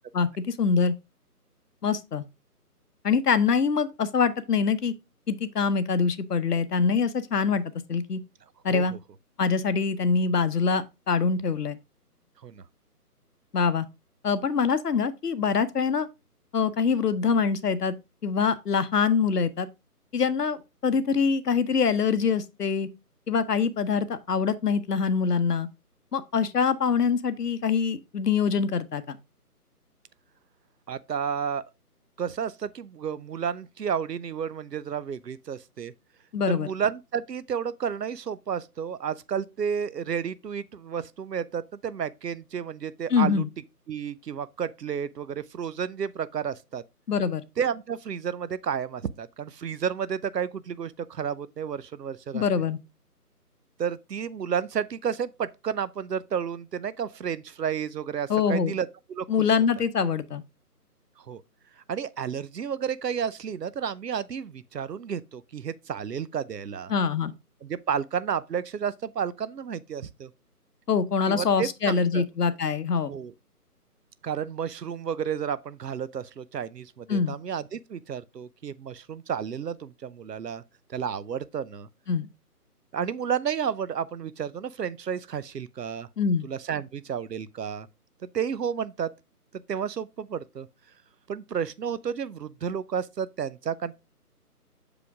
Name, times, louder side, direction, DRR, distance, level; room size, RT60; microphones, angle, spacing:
voice 1, 0.1-0.9 1.8-2.2 3.0-4.9 5.3-8.2 8.6-8.9 9.4-11.8 13.5-13.9 14.2-16.1 16.5-17.9 18.2-19.7 20.1-22.9 23.3-25.7 26.1-29.2 36.3-36.7 43.1-43.5 47.1-47.4 52.3-52.8 58.3-58.7 59.3-60.4 66.9-67.3 70.9-73.1 77.1-77.4 82.1-82.3 86.2-86.5, left 5 dB, 75° left, 0.9 m, -24 dB
voice 2, 30.9-31.6 32.2-35.9 36.5-43.4 43.9-46.8 47.6-52.5 53.8-59.3 61.3-61.4 61.9-66.9 67.6-70.3 71.3-72.2 73.1-73.3 74.2-80.6 80.9-81.9 82.9-86.1 86.4-87.9 88.3-89.1 89.7-90.7 91.3-94.0, right 7 dB, 85° right, 0.7 m, -31 dB
6.6 x 5.1 x 3.5 m
figure-of-eight pair, 160°, 47 cm